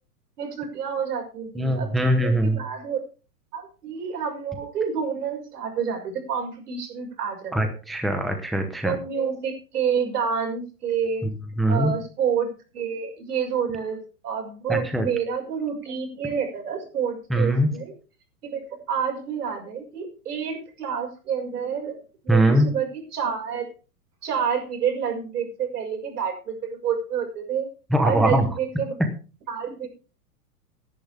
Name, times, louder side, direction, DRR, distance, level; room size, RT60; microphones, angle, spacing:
voice 1, 0.4-1.9 2.2-3.0 3.5-7.5 8.8-11.2 11.7-14.0 14.2-17.9 18.4-18.6 18.9-22.0 22.2-23.7 24.2-27.7 28.0-28.9 29.5-29.9, right 7 dB, 80° right, 4 dB, 6.1 m, -28 dB
voice 2, 1.6-2.6 7.5-9.0 11.2-11.9 14.7-15.1 17.3-17.7 22.3-22.7 27.9-28.5, right 1 dB, ahead, 5 dB, 0.9 m, -22 dB
18.0 x 10.5 x 3.5 m, 0.35 s
hypercardioid pair, 155°, 46 cm